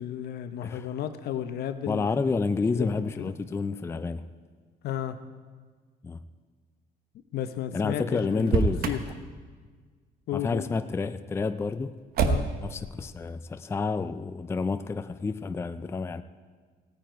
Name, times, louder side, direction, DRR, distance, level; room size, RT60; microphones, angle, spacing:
voice 1, 0.0-2.3 2.7-3.3 4.8-5.2 7.3-9.0 10.3-10.7 12.2-12.5, left 10 dB, 70° left, 10 dB, 0.9 m, -33 dB
voice 2, 1.9-4.3 6.0-6.2 7.7-8.9 10.3-11.9 12.6-16.2, left 4 dB, 15° left, 11 dB, 0.4 m, -29 dB
Motor vehicle (road), 8.4-9.1 12.1-12.7, right 4 dB, 65° right, 1.0 m, -25 dB
16.0 x 9.1 x 4.6 m, 1.5 s
cardioid pair, 110°, 17 cm